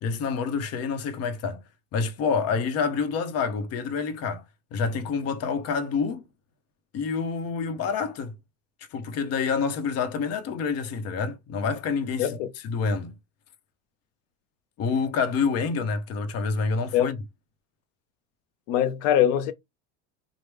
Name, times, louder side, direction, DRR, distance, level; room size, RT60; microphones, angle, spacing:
voice 1, 0.0-1.6 1.9-4.4 4.7-6.2 6.9-8.3 8.9-12.4 12.6-13.2 14.8-17.2, left 5 dB, 40° left, 0.7 m, -27 dB
voice 2, 12.2-12.5 16.9-17.1 18.7-19.5, left 10 dB, 85° left, 0.5 m, -22 dB
3.1 x 2.0 x 3.4 m
supercardioid pair, 125°, 36 cm